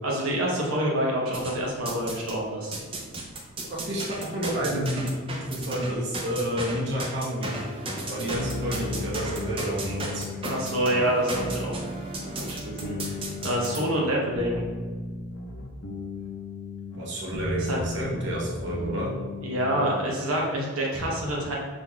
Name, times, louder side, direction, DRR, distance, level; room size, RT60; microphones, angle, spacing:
voice 1, 0.0-2.7 4.6-4.7 10.4-11.8 12.3-14.6 17.6-17.8 19.4-21.6, right 1 dB, 85° right, -3 dB, 0.9 m, -27 dB
sound 1, 1.3-2.4 2.7-13.8, right 2 dB, 25° right, 0.5 m, -35 dB
voice 2, 3.7-7.6 8.1-10.2 16.9-19.1, equal, 55° right, -5 dB, 1.0 m, -30 dB
sound 2, 8.3-20.2, left 3 dB, 75° left, 0.7 m, -36 dB
Bowed string instrument, 10.3-15.6, equal, 35° left, 0.5 m, -46 dB
6.1 x 3.8 x 2.2 m, 1.5 s
head